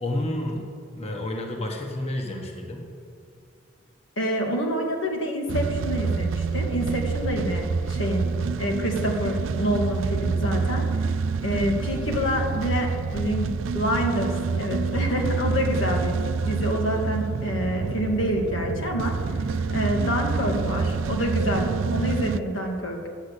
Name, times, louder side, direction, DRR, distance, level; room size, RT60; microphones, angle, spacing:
voice 1, 0.0-2.9 19.3-19.5, left 1 dB, 30° left, 1 dB, 1.2 m, -30 dB
voice 2, 4.2-8.3 8.6-10.8 11.4-16.2 16.4-19.1 19.7-23.1, equal, 80° left, 1 dB, 1.9 m, -27 dB
sound 1, 5.5-22.4, right 5 dB, 85° right, 0.4 m, -27 dB
10.5 x 7.9 x 8.2 m, 2.4 s
head